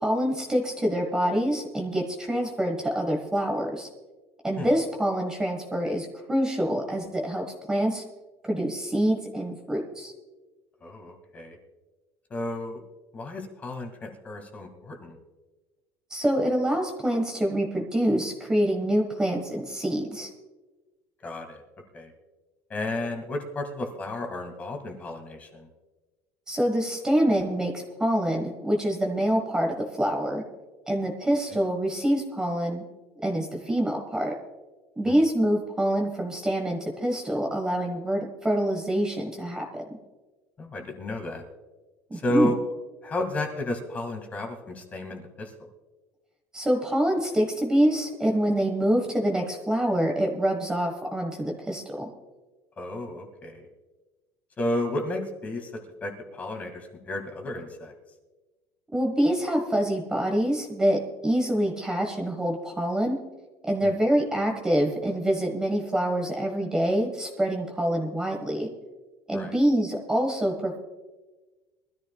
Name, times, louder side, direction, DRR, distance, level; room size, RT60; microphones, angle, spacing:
voice 1, 0.0-3.9 4.4-8.0 8.5-10.1 16.1-20.3 26.5-27.7 28.0-30.4 30.9-32.8 33.2-34.3 35.0-39.8 42.1-42.5 46.5-52.1 58.9-63.2 63.7-68.7 69.3-70.8, equal, 10° right, 2 dB, 1.5 m, -26 dB
voice 2, 10.8-11.6 12.3-12.8 13.1-15.2 21.2-21.6 21.9-22.1 22.7-25.7 35.0-35.1 40.6-41.4 42.1-42.6 43.0-45.5 52.8-53.7 54.6-57.9 63.8-63.9 69.3-69.5, left 1 dB, 20° left, 4 dB, 2.1 m, -32 dB
23.0 x 13.5 x 2.4 m, 1.2 s
cardioid pair, 155°, 7 cm